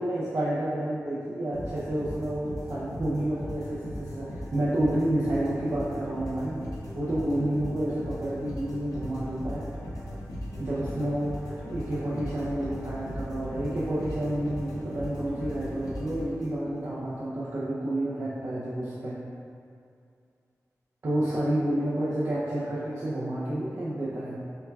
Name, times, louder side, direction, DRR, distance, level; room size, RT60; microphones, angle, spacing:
voice 1, 0.0-6.6 6.9-9.6 10.6-19.2 21.0-24.4, right 1 dB, 55° right, -9 dB, 0.6 m, -30 dB
sound 1, 1.5-16.8, equal, 75° left, 0.7 m, -38 dB
5.4 x 2.2 x 2.3 m, 2.4 s
cardioid pair, 55°, 6 cm